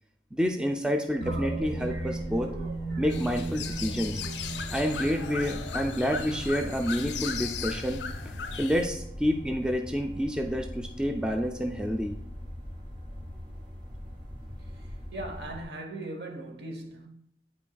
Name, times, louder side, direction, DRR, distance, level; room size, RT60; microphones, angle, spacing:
voice 1, 0.3-2.5 3.0-4.2 4.7-8.0 8.6-12.2, equal, 5° right, 0.4 m, -29 dB
sound 1, 1.2-5.9, right 2 dB, 90° right, 1.5 m, -36 dB
sound 2, 1.5-15.6, equal, 30° right, 1.7 m, -41 dB
sound 3, 3.1-8.9, left 5 dB, 85° left, 0.6 m, -37 dB
voice 2, 14.8-17.1, right 1 dB, 65° right, 1.1 m, -39 dB
8.7 x 5.7 x 2.3 m
head